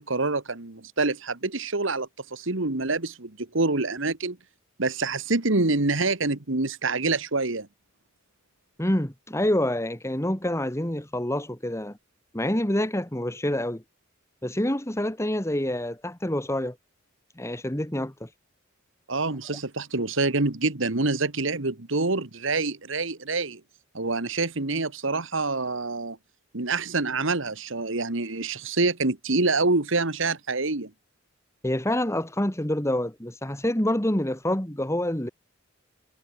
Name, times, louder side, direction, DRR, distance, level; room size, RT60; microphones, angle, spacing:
voice 1, 0.0-4.4 4.8-7.7 19.1-23.6 23.9-26.2 26.5-30.9, right 3 dB, 65° right, 1.7 m, -26 dB
voice 2, 8.8-12.0 12.3-13.8 14.4-16.8 17.4-18.3 31.6-35.3, left 1 dB, 15° left, 2.0 m, -27 dB
head